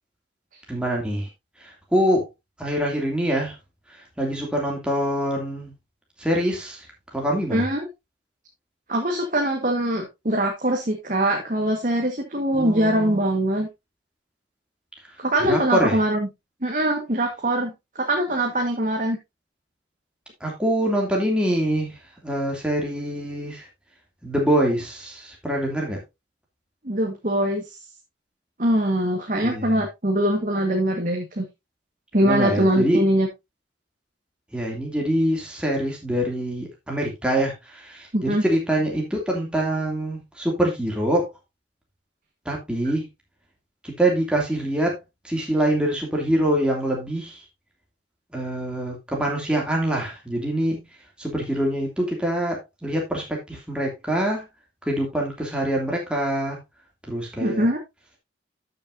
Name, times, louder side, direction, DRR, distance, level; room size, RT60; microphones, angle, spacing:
voice 1, 0.7-1.3 1.6-2.3 2.6-3.5 4.2-5.7 6.2-6.9 7.1-7.7 12.5-13.2 15.4-16.0 20.4-22.0 22.2-23.7 24.2-26.0 29.4-29.8 32.2-33.0 34.5-41.3 42.5-43.1 43.8-45.0 45.2-47.4 48.3-50.8 51.2-54.5 54.9-56.6 57.1-57.7, right 1 dB, 5° right, 2.6 m, -24 dB
voice 2, 7.5-7.9 8.9-13.7 15.2-16.3 16.6-17.7 18.0-19.2 26.8-27.6 28.6-31.4 32.1-33.3 38.1-38.4 57.4-57.8, right 1 dB, 45° right, 1.6 m, -22 dB
13.0 x 6.7 x 2.6 m
head